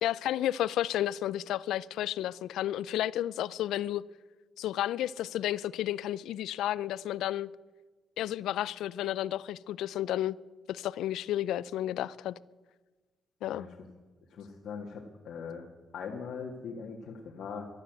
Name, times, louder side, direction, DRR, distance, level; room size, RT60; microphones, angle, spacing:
voice 1, 0.0-4.0 4.6-7.5 8.2-10.4 10.7-12.4 13.4-13.6, left 12 dB, 85° left, 21 dB, 0.4 m, -32 dB
voice 2, 14.3-15.7 15.9-17.7, left 6 dB, 65° left, -1 dB, 1.8 m, -40 dB
13.0 x 12.0 x 7.9 m, 1.3 s
cardioid pair, 90°, 0 cm